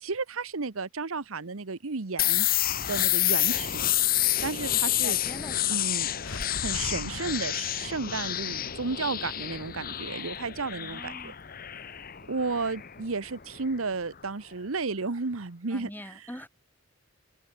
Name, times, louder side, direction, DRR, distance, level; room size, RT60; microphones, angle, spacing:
voice 1, 0.0-2.5 2.9-3.8 4.4-5.2 5.7-6.1 6.6-11.3 12.3-16.2, right 4 dB, 80° right, 1.0 m, -33 dB
sound 1, 2.2-13.8, left 13 dB, 45° left, 1.0 m, -29 dB
voice 2, 5.0-5.8 10.7-11.3 15.7-16.5, left 1 dB, 10° left, 6.4 m, -43 dB
sound 2, 6.1-10.0, left 2 dB, 75° left, 2.7 m, -41 dB
head